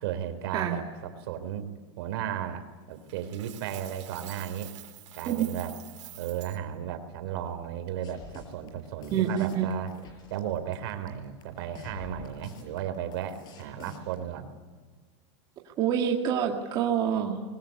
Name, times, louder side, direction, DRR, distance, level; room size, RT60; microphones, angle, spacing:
voice 1, 0.0-4.7 5.2-5.7 6.2-9.9 10.3-14.5, right 10 dB, 55° right, 8 dB, 3.8 m, -35 dB
Coin (dropping), 3.1-6.6, right 13 dB, 85° right, 4.3 m, -47 dB
sound 1, 8.0-14.2, left 3 dB, 30° left, 5.8 m, -47 dB
voice 2, 9.1-9.7 15.8-17.4, right 9 dB, 25° right, 0 dB, 2.0 m, -26 dB
25.0 x 22.0 x 9.7 m, 1.5 s
supercardioid pair, 170°, 15 cm